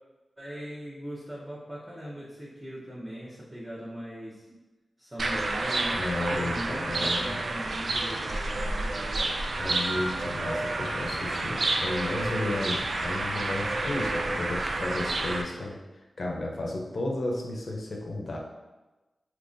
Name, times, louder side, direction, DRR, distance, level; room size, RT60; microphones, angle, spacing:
voice 1, 0.4-4.4 5.0-6.0 6.3-9.4, equal, 15° right, -9 dB, 0.8 m, -40 dB
sound 1, 5.2-15.4, right 2 dB, 60° right, 0.3 m, -29 dB
voice 2, 6.0-7.4 9.6-18.4, left 2 dB, 55° left, -1 dB, 0.6 m, -33 dB
3.6 x 2.9 x 2.6 m, 1.1 s
wide cardioid pair, 80°, 0 cm